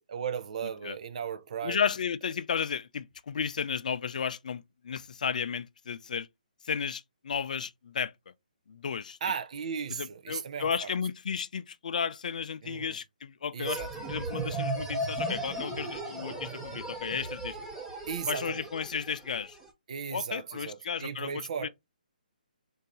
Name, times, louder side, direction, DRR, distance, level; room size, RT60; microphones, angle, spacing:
voice 1, 0.0-1.8 9.2-10.9 12.6-13.0 13.5-14.1 18.1-18.6 19.9-21.7, right 7 dB, 50° right, 0.6 m, -36 dB
voice 2, 1.6-6.3 6.6-8.1 8.7-9.2 9.9-13.8 14.1-17.6 18.3-19.6 20.1-21.7, left 7 dB, 60° left, 0.5 m, -33 dB
sound 1, 13.6-19.7, right 2 dB, 10° right, 0.8 m, -36 dB
3.9 x 2.7 x 4.6 m
hypercardioid pair, 155°, 5 cm